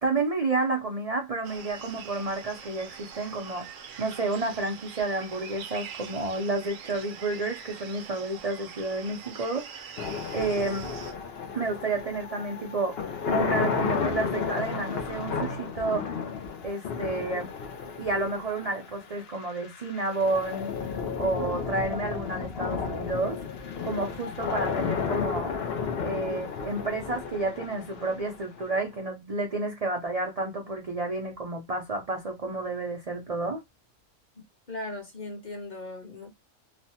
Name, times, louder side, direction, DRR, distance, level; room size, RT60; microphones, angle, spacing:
voice 1, 0.0-10.0 10.3-10.9 11.5-13.0 13.3-16.1 16.6-17.5 18.0-20.7 21.2-23.4 23.8-25.5 26.0-33.6, right 3 dB, 45° right, 0.5 m, -30 dB
sound 1, 1.4-11.1, right 7 dB, 70° right, 0.9 m, -44 dB
sound 2, 10.0-29.0, left 6 dB, 60° left, 0.7 m, -32 dB
voice 2, 34.4-36.3, left 2 dB, 35° left, 1.0 m, -38 dB
3.1 x 2.1 x 2.7 m
omnidirectional pair, 1.4 m